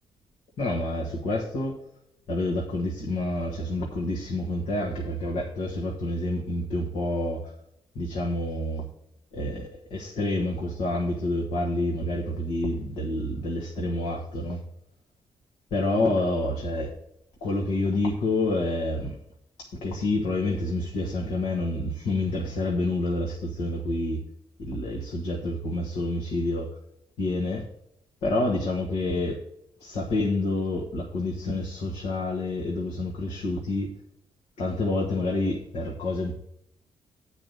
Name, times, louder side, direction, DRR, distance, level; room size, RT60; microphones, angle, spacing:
voice 1, 0.6-1.7 2.3-7.5 7.9-8.8 9.3-14.6 15.7-16.9 17.4-19.2 19.6-24.2 24.6-26.7 27.2-27.6 28.2-29.4 29.8-33.9 34.6-36.3, left 2 dB, 85° left, -3 dB, 1.6 m, -28 dB
8.8 x 4.8 x 6.8 m, 0.75 s
supercardioid pair, 65°, 10 cm